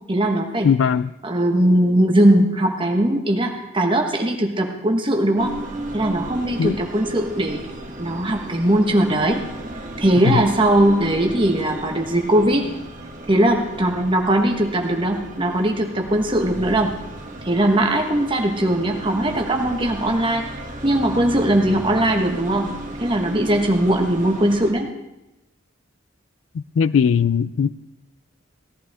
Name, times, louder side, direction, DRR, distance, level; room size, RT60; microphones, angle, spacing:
voice 1, 0.1-0.7 1.2-5.5 5.9-7.7 8.0-9.4 10.0-12.7 13.3-16.9 17.4-20.4 20.8-22.7 23.0-24.9, right 1 dB, 25° right, 1.3 m, -19 dB
voice 2, 0.6-1.1 6.6-6.8 10.2-10.4 26.5-27.7, left 7 dB, 75° left, 0.3 m, -19 dB
sound 1, 5.4-24.7, right 1 dB, 40° right, 1.5 m, -35 dB
17.0 x 11.0 x 3.6 m
head